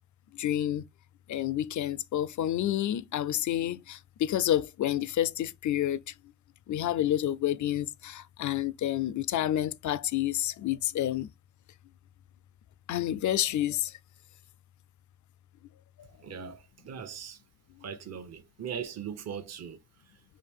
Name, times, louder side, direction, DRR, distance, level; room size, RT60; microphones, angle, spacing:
voice 1, 0.3-0.8 1.3-6.1 6.7-11.3 12.9-14.0 16.0-16.1 16.4-16.5, left 12 dB, 70° left, 0.5 m, -29 dB
voice 2, 16.2-17.4 17.8-20.2, right 7 dB, 55° right, 0.8 m, -40 dB
4.7 x 2.6 x 3.5 m
wide cardioid pair, 125°, 30 cm